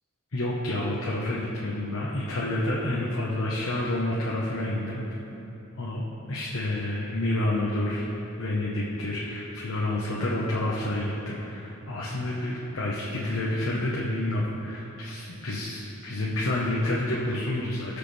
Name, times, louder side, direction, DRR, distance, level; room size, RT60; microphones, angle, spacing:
voice 1, 0.3-5.2 5.8-8.1 8.4-18.0, left 1 dB, 70° left, -4 dB, 1.2 m, -29 dB
20.0 x 6.7 x 3.4 m, 3.0 s
head